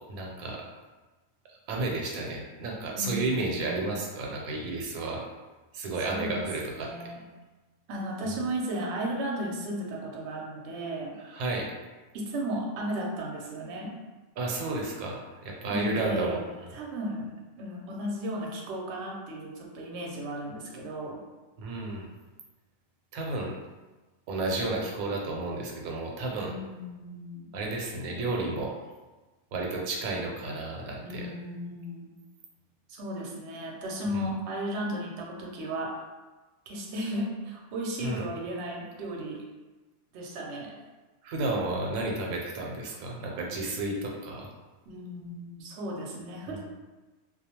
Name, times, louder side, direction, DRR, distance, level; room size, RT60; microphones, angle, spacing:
voice 1, 0.1-0.6 1.5-5.2 5.7-6.9 11.2-11.7 14.4-16.8 21.6-22.1 23.1-23.5 24.3-26.5 27.5-28.7 29.5-31.3 34.1-34.2 38.0-38.3 41.2-44.5 46.5-46.6, right 2 dB, 90° right, -1 dB, 1.0 m, -32 dB
voice 2, 2.9-3.8 6.1-6.4 6.8-7.2 7.9-11.2 12.1-13.9 15.7-16.4 16.7-17.3 17.6-21.2 26.4-27.5 31.0-32.1 32.9-35.9 36.7-39.4 40.1-40.8 44.9-46.6, right 1 dB, 65° right, -2 dB, 0.8 m, -35 dB
2.3 x 2.2 x 2.8 m, 1.2 s
omnidirectional pair, 1.4 m